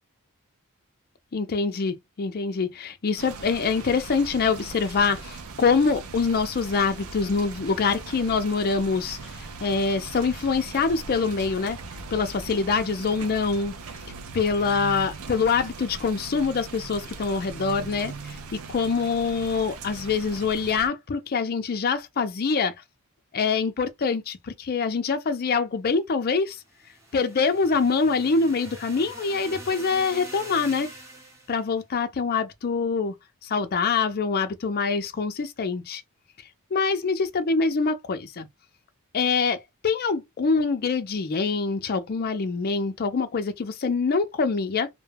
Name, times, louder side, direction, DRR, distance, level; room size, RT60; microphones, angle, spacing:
voice 1, 1.3-11.8 12.1-13.7 14.3-22.7 23.3-26.6 27.1-30.9 31.5-33.1 33.4-36.0 36.7-38.5 39.1-44.9, left 4 dB, 45° left, 0.4 m, -25 dB
sound 1, 3.2-20.9, right 4 dB, 70° right, 0.5 m, -40 dB
sound 2, 26.7-31.6, right 2 dB, 15° right, 0.8 m, -43 dB
2.2 x 2.2 x 3.3 m
head